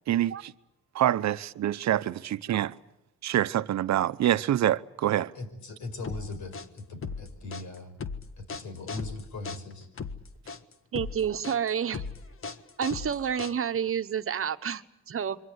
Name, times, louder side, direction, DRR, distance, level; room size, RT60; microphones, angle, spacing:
voice 1, 0.1-0.5 0.9-2.7 3.2-5.3 10.9-11.0, right 12 dB, 65° right, 0.9 m, -26 dB
voice 2, 5.3-7.9 8.4-9.9, left 2 dB, 75° left, 5.9 m, -39 dB
sound 1, 6.0-13.9, left 5 dB, 45° left, 1.6 m, -38 dB
voice 3, 10.9-12.0 12.8-15.4, right 8 dB, 45° right, 1.3 m, -29 dB
27.5 x 24.0 x 8.2 m
cardioid pair, 90°, 30 cm